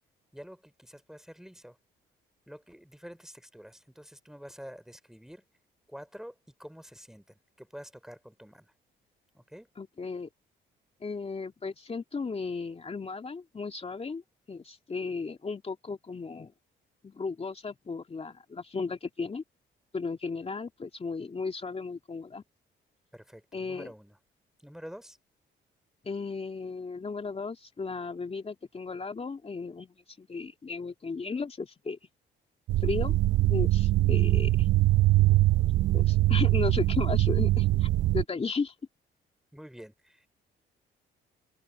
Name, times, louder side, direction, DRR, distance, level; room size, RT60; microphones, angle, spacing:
voice 1, 0.3-1.8 2.5-5.4 5.9-8.7 9.3-9.7 23.1-24.2 24.6-25.2 39.5-40.3, equal, ahead, 3.6 m, -48 dB
voice 2, 9.8-10.3 11.0-14.2 14.5-16.5 17.0-19.4 19.9-22.4 23.5-23.9 26.0-32.0 32.8-33.2 33.5-34.7 35.9-38.7, left 4 dB, 30° left, 2.7 m, -35 dB
sound 1, 32.7-38.2, right 16 dB, 70° right, 0.6 m, -23 dB
cardioid pair, 90°, 20 cm